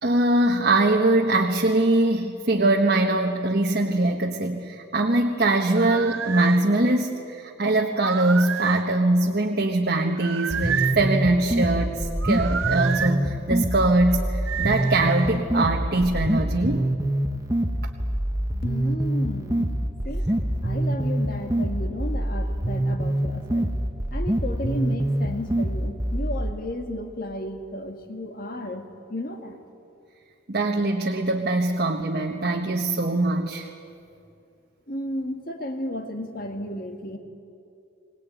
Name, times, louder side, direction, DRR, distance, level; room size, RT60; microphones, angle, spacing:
voice 1, 0.0-16.9 30.5-33.7, right 2 dB, 50° right, 1 dB, 1.3 m, -22 dB
sound 1, 5.8-6.6 7.9-8.9 10.2-11.0 12.2-13.1 14.5-15.3, right 8 dB, 80° right, 0.7 m, -29 dB
sound 2, 10.5-26.5, right 1 dB, 15° right, 1.1 m, -25 dB
voice 2, 18.6-19.7 20.0-20.3 20.6-23.7 24.1-29.6 34.9-37.2, left 1 dB, 45° left, 5 dB, 2.0 m, -33 dB
23.0 x 19.0 x 9.3 m, 2.6 s
head